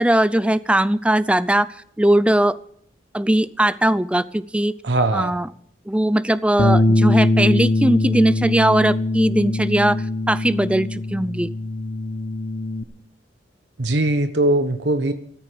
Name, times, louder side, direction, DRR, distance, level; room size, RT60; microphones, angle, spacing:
voice 1, 0.0-1.7 2.0-2.6 3.1-4.7 5.1-5.5 5.9-11.5, right 1 dB, 5° right, 16 dB, 0.5 m, -19 dB
voice 2, 4.8-5.3 13.8-15.1, right 1 dB, 70° right, 9 dB, 1.1 m, -20 dB
Bass guitar, 6.6-12.8, left 2 dB, 55° left, 1.0 m, -21 dB
13.5 x 13.5 x 5.2 m, 0.65 s
head